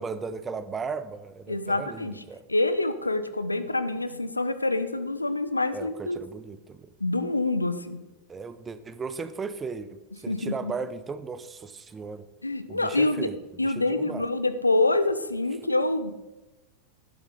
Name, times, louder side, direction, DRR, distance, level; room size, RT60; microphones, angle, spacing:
voice 1, 0.0-2.4 5.7-6.9 8.3-12.2 12.7-13.4 13.6-14.3, right 5 dB, 20° right, 13 dB, 0.8 m, -36 dB
voice 2, 1.5-2.1 2.5-6.2 7.0-8.0 10.3-10.7 12.4-13.3 13.6-16.1, left 2 dB, 80° left, 12 dB, 0.8 m, -26 dB
11.5 x 11.5 x 3.8 m, 1.1 s
figure-of-eight pair, 90°, 0 cm